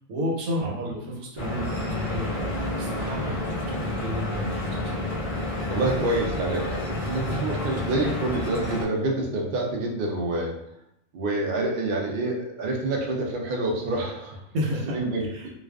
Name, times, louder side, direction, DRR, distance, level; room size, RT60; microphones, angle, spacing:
voice 1, 0.1-2.5 2.7-5.2 14.5-14.9 15.3-15.5, equal, 90° right, -2 dB, 1.1 m, -31 dB
Stream / Boat Water vehicle, 1.4-8.8, left 1 dB, 35° left, 0.5 m, -30 dB
voice 2, 5.7-10.6 11.1-14.4 14.9-15.5, right 2 dB, 75° right, 0 dB, 0.4 m, -27 dB
2.3 x 2.3 x 2.2 m, 0.78 s
omnidirectional pair, 1.5 m